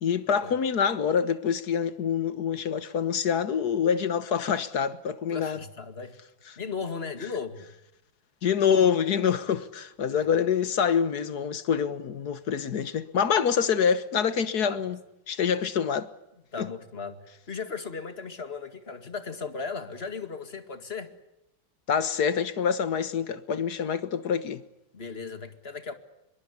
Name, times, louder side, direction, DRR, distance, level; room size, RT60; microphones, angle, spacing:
voice 1, 0.0-5.6 8.4-15.0 15.3-16.1 16.6-16.7 21.9-24.6, left 7 dB, 55° left, 1.7 m, -26 dB
voice 2, 5.3-6.2 6.6-7.7 10.1-10.2 14.7-14.8 16.5-21.1 24.9-26.0, left 5 dB, 30° left, 2.2 m, -36 dB
25.0 x 22.5 x 8.5 m
omnidirectional pair, 2.2 m